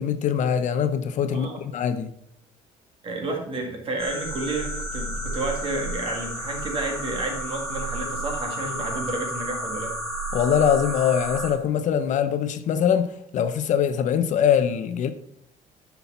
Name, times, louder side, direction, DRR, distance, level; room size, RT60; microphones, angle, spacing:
voice 1, 0.0-2.1 10.3-15.1, left 8 dB, 55° left, 0.6 m, -23 dB
voice 2, 1.3-1.6 3.0-9.9, right 2 dB, 35° right, 2.0 m, -31 dB
sound 1, 4.0-11.5, right 1 dB, 5° left, 2.4 m, -32 dB
9.7 x 5.9 x 4.1 m
cardioid pair, 145°, 15 cm